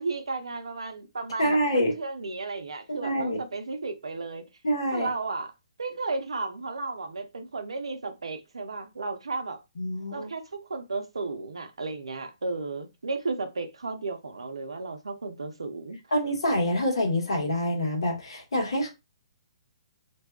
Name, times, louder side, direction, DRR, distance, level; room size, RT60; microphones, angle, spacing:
voice 1, 0.0-4.4 4.9-5.5 5.8-9.6 10.1-16.0, right 3 dB, 80° right, 0.5 m, -34 dB
voice 2, 1.4-1.9 2.9-3.4 4.6-5.1 9.8-10.3 16.1-18.9, equal, 70° left, 1.2 m, -26 dB
2.6 x 2.2 x 2.3 m
hypercardioid pair, 135°, 3 cm